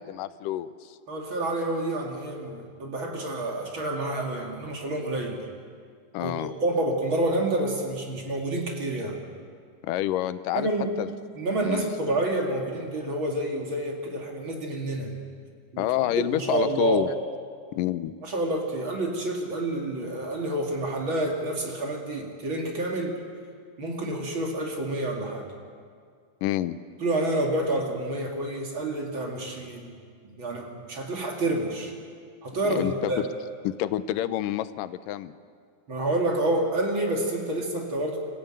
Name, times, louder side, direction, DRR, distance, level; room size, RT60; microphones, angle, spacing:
voice 1, 0.0-1.0 6.1-6.5 9.8-10.7 11.0-11.1 11.6-11.9 15.8-17.1 17.7-18.1 26.4-26.8 32.6-33.1 33.6-35.3, left 13 dB, 90° left, 13 dB, 2.4 m, -28 dB
voice 2, 1.1-5.4 6.2-9.2 10.5-10.9 11.4-15.1 15.7-15.9 16.1-17.0 18.2-23.2 23.8-25.5 27.0-30.0 30.2-31.9 32.4-33.3 35.9-38.2, right 1 dB, 40° right, 0 dB, 2.9 m, -28 dB
26.5 x 15.0 x 9.0 m, 2.1 s
omnidirectional pair, 3.7 m